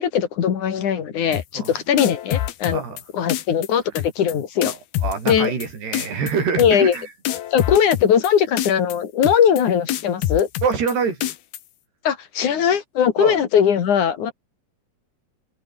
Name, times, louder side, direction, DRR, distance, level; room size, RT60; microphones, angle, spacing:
voice 1, 0.0-2.8 3.1-4.7 5.3-5.5 6.6-6.9 7.5-10.5 12.0-14.3, left 8 dB, 55° left, 3.4 m, -20 dB
sound 1, 1.3-1.7 2.0-3.0 3.3-3.7 4.0-4.3 4.6-5.7 5.9-6.3 6.6-7.0 7.3-8.3 8.6-9.0 9.2-9.6 9.9-10.9 11.2-11.6, left 12 dB, 75° left, 3.4 m, -26 dB
voice 2, 5.0-7.1 10.6-11.3 13.2-13.4, right 6 dB, 85° right, 7.3 m, -25 dB
omnidirectional pair, 4.6 m